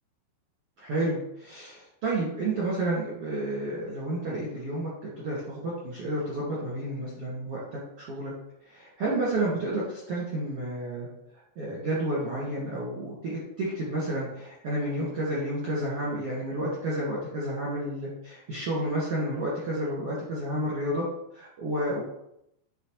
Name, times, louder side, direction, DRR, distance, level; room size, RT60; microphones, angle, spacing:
voice 1, 0.8-4.9 5.2-8.3 8.6-11.1 11.6-21.0 21.3-22.0, right 1 dB, 50° right, -7 dB, 1.8 m, -30 dB
9.6 x 5.2 x 3.2 m, 0.79 s
omnidirectional pair, 5.7 m